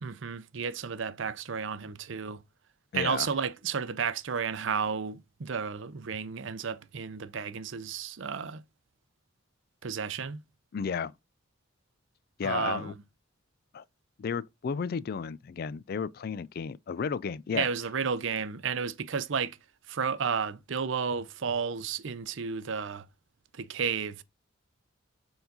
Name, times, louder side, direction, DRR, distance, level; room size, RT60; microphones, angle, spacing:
voice 1, 0.0-2.4 2.9-8.6 9.8-10.4 12.4-12.9 17.5-19.6 19.9-23.1 23.5-24.2, right 6 dB, 65° right, 0.6 m, -32 dB
voice 2, 2.9-3.3 10.7-11.1 12.4-12.9 13.7-13.8 14.2-17.7, left 6 dB, 50° left, 0.3 m, -33 dB
7.0 x 3.8 x 3.9 m
head